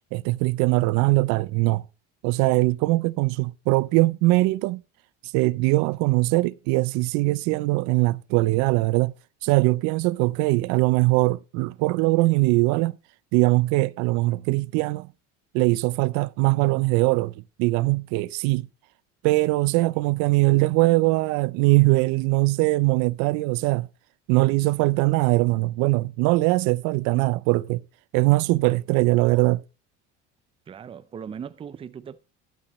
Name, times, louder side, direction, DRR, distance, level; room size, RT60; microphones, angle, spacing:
voice 1, 0.1-1.8 2.2-4.8 5.3-9.1 9.4-13.0 13.3-15.1 15.5-17.3 17.6-18.7 19.2-23.9 24.3-27.8 28.1-29.6, right 22 dB, 80° right, 0.5 m, -21 dB
voice 2, 30.7-32.2, right 7 dB, 20° right, 0.5 m, -38 dB
11.5 x 9.9 x 3.1 m
cardioid pair, 150°, 29 cm